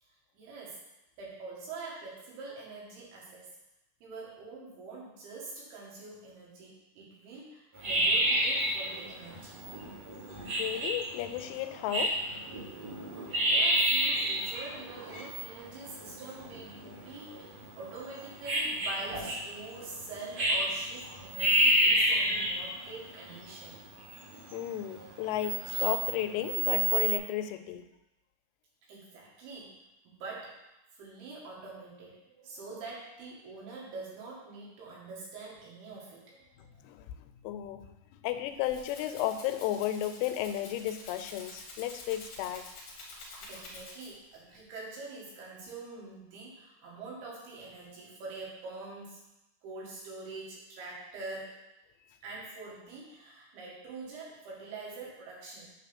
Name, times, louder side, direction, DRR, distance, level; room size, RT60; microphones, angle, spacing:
voice 1, 0.0-0.8 1.2-3.5 4.0-9.6 13.5-23.8 28.8-29.7 30.1-30.6 30.9-36.7 43.4-49.2 49.6-51.6 52.2-55.7, right 3 dB, 85° right, -4 dB, 3.7 m, -45 dB
sound 1, 7.8-27.2, right 1 dB, 45° right, 3.3 m, -30 dB
voice 2, 10.6-12.2 24.5-27.8 36.8-37.1 37.4-37.9 38.2-42.6, left 12 dB, 90° left, 9 dB, 2.5 m, -33 dB
Rattle (instrument), 38.4-44.3, left 2 dB, 65° left, 1.4 m, -48 dB
7.3 x 3.9 x 5.9 m, 0.92 s
omnidirectional pair, 4.4 m